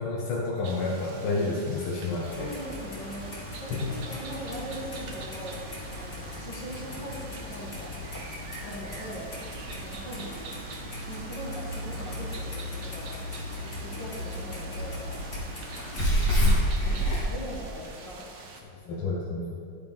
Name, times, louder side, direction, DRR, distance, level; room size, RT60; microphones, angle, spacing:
voice 1, 0.0-2.5 3.7-3.9 18.9-19.6, left 3 dB, 85° left, -2 dB, 1.6 m, -30 dB
sound 1, 0.6-18.6, right 3 dB, 75° right, 0.6 m, -45 dB
Clock, 2.2-17.2, equal, 30° left, 1.7 m, -32 dB
voice 2, 2.4-3.3 3.6-8.2 8.6-9.3 9.8-10.6 11.1-13.1 13.6-15.1 16.1-18.3, equal, 60° left, -4 dB, 2.2 m, -41 dB
11.5 x 5.0 x 3.5 m, 2.3 s
omnidirectional pair, 2.3 m